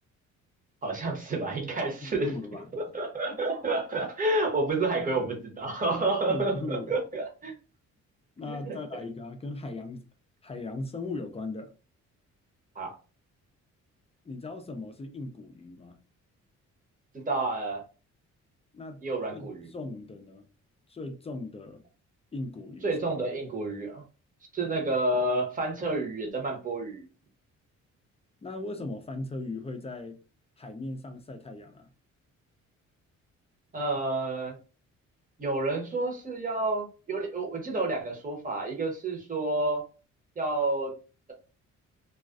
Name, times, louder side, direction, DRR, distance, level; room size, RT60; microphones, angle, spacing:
voice 1, 0.8-2.3 2.7-7.5 8.5-8.8 12.8-12.9 17.1-17.8 19.0-19.7 22.8-24.0 24.5-27.1 33.7-34.6 35.4-39.8 40.4-40.9, right 2 dB, 25° right, 0.9 m, -29 dB
voice 2, 2.0-2.7 3.3-3.4 6.3-7.0 8.4-10.0 10.4-11.7 14.3-16.0 18.7-19.0 19.3-20.4 20.9-21.8 22.3-23.0 28.4-30.2 30.6-31.9, left 2 dB, 20° left, 0.4 m, -38 dB
2.4 x 2.2 x 2.4 m
cardioid pair, 90°, 30 cm